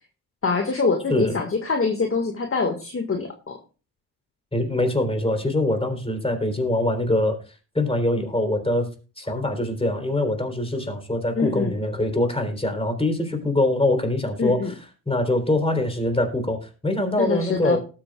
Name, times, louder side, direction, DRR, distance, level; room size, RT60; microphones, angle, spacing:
voice 1, 0.4-3.6 11.4-11.7 14.4-14.7 17.2-17.8, left 4 dB, 30° left, 4 dB, 1.7 m, -24 dB
voice 2, 4.5-7.4 7.7-8.9 9.2-14.8 15.1-17.8, left 1 dB, 10° left, 5 dB, 3.5 m, -23 dB
19.0 x 7.7 x 2.3 m, 0.35 s
hypercardioid pair, 45°, 46 cm